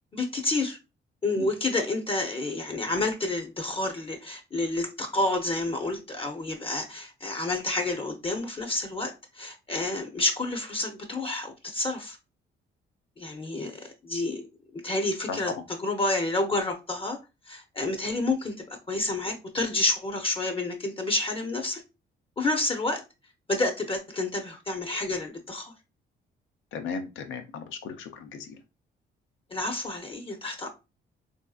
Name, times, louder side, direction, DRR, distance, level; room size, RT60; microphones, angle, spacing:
voice 1, 0.1-0.8 1.2-12.2 13.2-14.4 14.7-17.2 17.5-21.8 22.4-23.0 23.5-25.7 29.5-30.7, left 2 dB, 30° left, 0.6 m, -29 dB
voice 2, 26.7-28.6, left 5 dB, 85° left, 0.6 m, -36 dB
3.4 x 2.6 x 2.3 m
cardioid pair, 90°, 20 cm